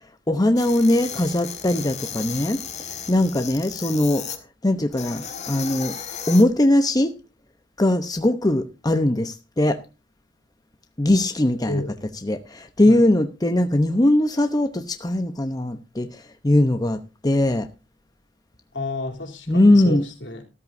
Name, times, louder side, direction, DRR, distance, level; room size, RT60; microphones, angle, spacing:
voice 1, 0.3-2.6 3.1-4.3 4.6-6.0 6.3-7.1 7.8-9.8 11.0-11.8 12.2-17.7 19.5-20.1, left 1 dB, 20° left, 0.9 m, -20 dB
sound 1, 0.6-4.4 4.9-6.4, left 7 dB, 40° left, 1.7 m, -34 dB
voice 2, 18.7-20.4, left 2 dB, 70° left, 3.3 m, -30 dB
14.0 x 13.5 x 2.7 m
head